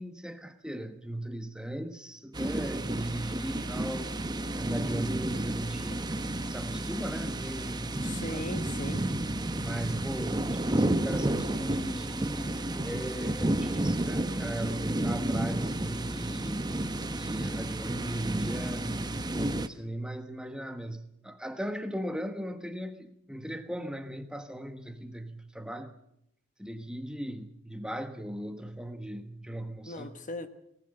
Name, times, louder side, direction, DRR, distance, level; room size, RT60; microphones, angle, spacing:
voice 1, 0.0-4.1 4.5-6.2 6.5-8.7 9.6-16.7 17.1-25.9 26.6-30.1, right 1 dB, 5° right, 1.2 m, -38 dB
sound 1, 2.3-19.7, right 1 dB, 20° right, 0.9 m, -31 dB
voice 2, 8.0-9.1 29.9-30.5, left 1 dB, 40° left, 1.3 m, -38 dB
19.5 x 19.0 x 7.9 m
head